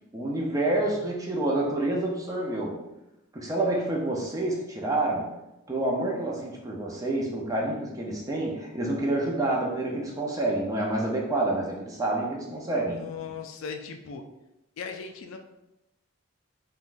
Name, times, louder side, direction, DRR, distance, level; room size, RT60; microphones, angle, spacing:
voice 1, 0.1-2.8 3.3-5.3 5.7-13.0, right 2 dB, 15° right, -2 dB, 0.5 m, -28 dB
voice 2, 12.9-14.2 14.8-15.4, left 6 dB, 70° left, 6 dB, 0.3 m, -38 dB
3.6 x 2.3 x 2.5 m, 0.93 s
head